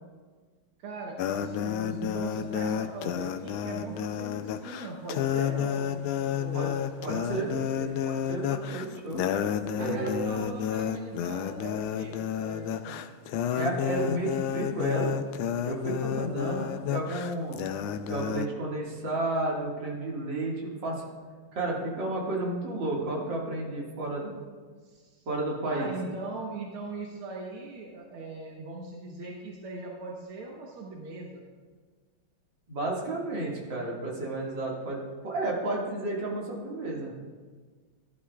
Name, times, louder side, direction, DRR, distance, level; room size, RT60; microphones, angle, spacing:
voice 1, 0.8-6.8 7.1-8.0 9.8-13.1 16.4-16.7 24.8-25.3 25.7-31.5, right 3 dB, 85° right, -2 dB, 2.0 m, -40 dB
sound 1, 1.2-18.5, left 9 dB, 80° left, 1.4 m, -31 dB
voice 2, 7.0-7.5 8.1-9.3 9.8-10.3 13.5-15.1 15.6-17.6 18.1-21.0 21.5-24.3 25.3-25.9 32.7-37.1, right 2 dB, 60° right, -3 dB, 2.6 m, -32 dB
15.5 x 11.5 x 2.4 m, 1.5 s
omnidirectional pair, 2.3 m